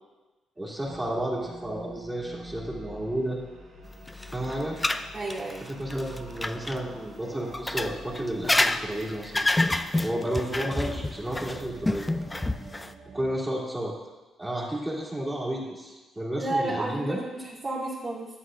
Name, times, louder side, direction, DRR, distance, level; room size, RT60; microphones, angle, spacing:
voice 1, 0.6-3.4 4.3-4.8 5.6-9.5 10.0-12.1 13.1-13.9 14.4-17.2, right 1 dB, 15° right, -6 dB, 2.5 m, -32 dB
sound 1, 0.8-13.4, right 1 dB, 75° right, 1.7 m, -46 dB
sound 2, 4.1-6.8 7.5-12.9, left 2 dB, 15° left, 0.3 m, -28 dB
voice 2, 5.1-5.7 16.4-18.3, right 2 dB, 35° right, -9 dB, 2.1 m, -31 dB
11.5 x 7.9 x 2.5 m, 1.2 s
cardioid pair, 90°, 0 cm